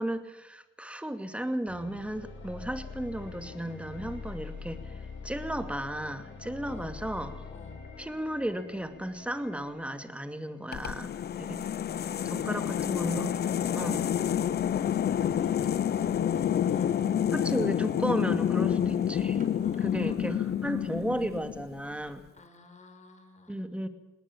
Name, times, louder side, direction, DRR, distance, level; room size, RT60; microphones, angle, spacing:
voice 1, 0.0-7.3 8.0-11.1 11.4-11.6 12.5-13.3 13.7-14.0 17.3-19.5 19.8-22.3 23.5-23.9, right 1 dB, 5° right, 9 dB, 2.4 m, -34 dB
sound 1, 1.7-10.7, left 4 dB, 70° left, 6.4 m, -44 dB
voice 2, 7.5-7.8 11.4-12.9 19.6-21.1 22.3-23.7, left 3 dB, 35° left, 6 dB, 5.7 m, -53 dB
sound 2, 10.7-21.8, left 9 dB, 55° left, 0.9 m, -28 dB
sound 3, 15.1-20.1, right 4 dB, 45° right, 5.0 m, -50 dB
19.5 x 19.0 x 8.8 m, 1.1 s
cardioid pair, 90°, 20 cm